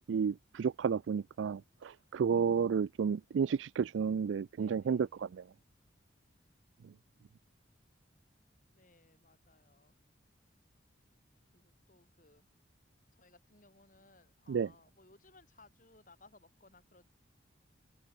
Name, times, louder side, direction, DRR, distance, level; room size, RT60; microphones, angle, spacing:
voice 1, 0.1-5.4 14.5-14.7, right 6 dB, 85° right, 0.4 m, -32 dB
voice 2, 4.6-5.3 8.7-9.9 11.5-12.5 13.1-17.1, left 2 dB, 45° left, 7.3 m, -63 dB
head